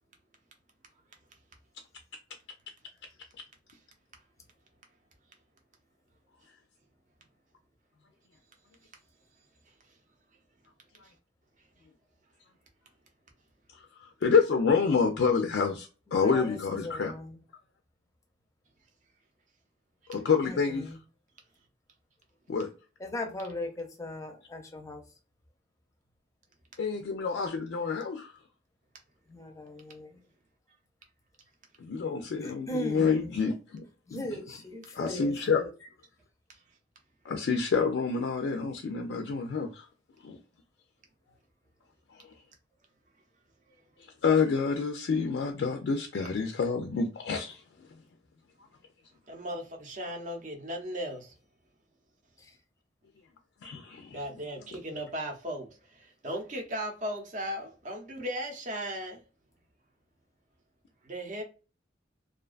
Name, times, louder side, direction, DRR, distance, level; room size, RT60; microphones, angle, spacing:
voice 1, 14.0-17.1 20.1-20.9 22.5-22.7 26.8-28.3 31.8-33.8 34.1-34.6 34.9-35.9 37.2-39.9 40.2-40.4 44.2-47.6 53.6-54.2, left 5 dB, 70° left, 0.4 m, -28 dB
voice 2, 16.2-17.4 20.4-21.0 23.0-25.0 29.3-30.1 32.4-33.4 34.1-35.7, left 1 dB, 20° left, 0.5 m, -38 dB
voice 3, 49.3-51.3 54.1-55.7 56.2-59.2 61.1-61.4, equal, 45° right, 0.6 m, -36 dB
2.4 x 2.3 x 2.3 m
head